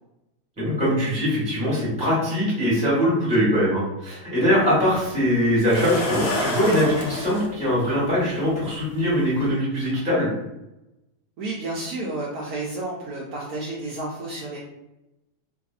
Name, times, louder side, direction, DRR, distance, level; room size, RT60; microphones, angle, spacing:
voice 1, 0.6-10.3, equal, 5° right, -8 dB, 1.1 m, -22 dB
sound 1, 4.5-4.6 5.7-7.5 8.7-8.8 9.3-9.5, left 1 dB, 70° left, 0.8 m, -27 dB
voice 2, 11.4-14.6, right 2 dB, 70° right, -4 dB, 1.0 m, -31 dB
2.7 x 2.5 x 2.4 m, 0.91 s
omnidirectional pair, 1.8 m